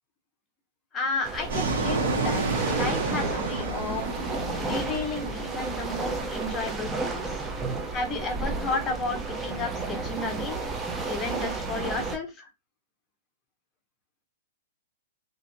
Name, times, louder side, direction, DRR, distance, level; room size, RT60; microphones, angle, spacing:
voice 1, 0.9-2.4 2.7-4.1 4.6-7.3 7.9-10.6 11.1-12.5, left 3 dB, 15° left, 3 dB, 0.8 m, -32 dB
sound 1, 1.2-12.2, right 3 dB, 10° right, 0.6 m, -32 dB
Fixed-wing aircraft airplane, 1.5-6.7, right 3 dB, 70° right, 1.1 m, -31 dB
2.7 x 2.5 x 2.5 m, 0.22 s
hypercardioid pair, 145°, 0 cm